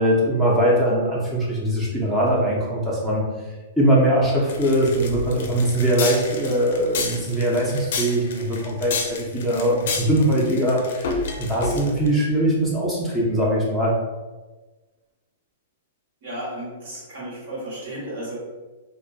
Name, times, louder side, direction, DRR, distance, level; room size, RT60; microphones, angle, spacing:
voice 1, 0.0-3.2 3.8-13.9, right 1 dB, 5° right, -6 dB, 0.4 m, -21 dB
sound 1, 4.5-12.1, left 4 dB, 60° left, 0.4 m, -30 dB
voice 2, 16.2-18.4, right 1 dB, 65° right, -5 dB, 1.2 m, -33 dB
2.4 x 2.2 x 2.4 m, 1.2 s
hypercardioid pair, 160°, 0 cm